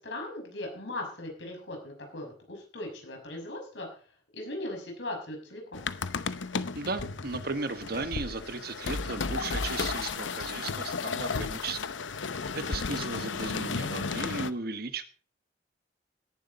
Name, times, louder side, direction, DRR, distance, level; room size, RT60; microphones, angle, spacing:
voice 1, 0.0-3.9 4.3-5.8, left 1 dB, 75° left, 2 dB, 6.0 m, -38 dB
sound 1, 5.7-14.5, left 4 dB, 90° left, 0.8 m, -33 dB
voice 2, 6.7-11.9 12.3-15.0, right 3 dB, 55° right, 10 dB, 1.2 m, -36 dB
17.0 x 11.0 x 4.1 m, 0.41 s
head